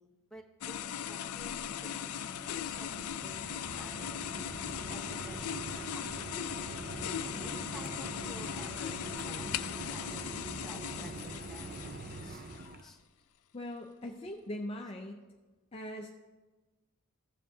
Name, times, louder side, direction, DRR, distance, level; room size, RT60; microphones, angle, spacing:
voice 1, 0.0-2.1 2.4-6.5 7.1-11.9 12.2-12.5 12.8-13.0 14.8-14.9, equal, ahead, 1 dB, 0.8 m, -53 dB
sound 1, 0.6-12.9, left 9 dB, 85° left, 0.4 m, -39 dB
Mechanisms, 1.8-12.8, right 2 dB, 40° right, 0.4 m, -44 dB
voice 2, 13.5-15.2 15.7-16.1, left 1 dB, 25° left, 2 dB, 0.5 m, -40 dB
14.5 x 7.5 x 2.7 m, 1.2 s
head